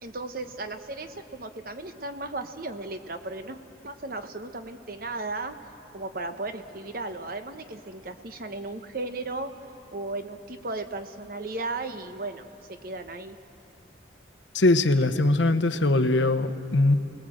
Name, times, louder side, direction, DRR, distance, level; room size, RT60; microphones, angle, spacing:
voice 1, 0.0-3.6 3.8-5.5 5.9-9.5 9.9-13.4, right 2 dB, 50° right, 8 dB, 1.0 m, -35 dB
voice 2, 14.5-16.9, left 2 dB, 80° left, 10 dB, 0.9 m, -21 dB
28.5 x 19.5 x 7.8 m, 2.9 s
head